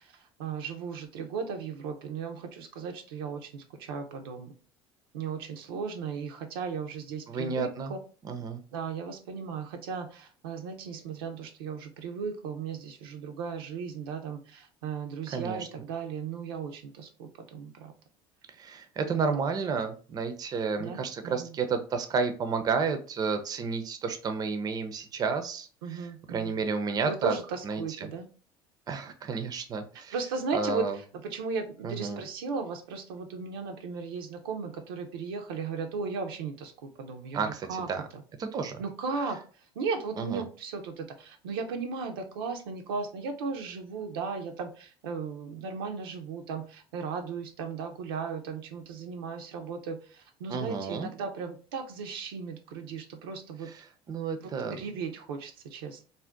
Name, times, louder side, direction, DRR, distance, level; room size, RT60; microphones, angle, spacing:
voice 1, 0.0-4.5 5.1-8.0 8.7-17.9 19.1-19.2 20.8-21.6 25.8-26.6 27.1-28.3 30.1-38.2 38.8-39.4 39.7-53.7 54.4-56.0, right 5 dB, 90° right, 4 dB, 0.6 m, -36 dB
voice 2, 7.3-7.9 8.2-8.6 15.3-15.7 18.6-26.0 26.3-27.3 27.6-28.1 28.9-30.1 30.5-31.0 31.8-32.2 37.3-38.1 38.4-38.8 40.2-40.4 50.5-51.1 54.1-54.8, right 5 dB, 35° right, 8 dB, 0.5 m, -31 dB
2.5 x 2.1 x 3.4 m, 0.38 s
supercardioid pair, 90°, 12 cm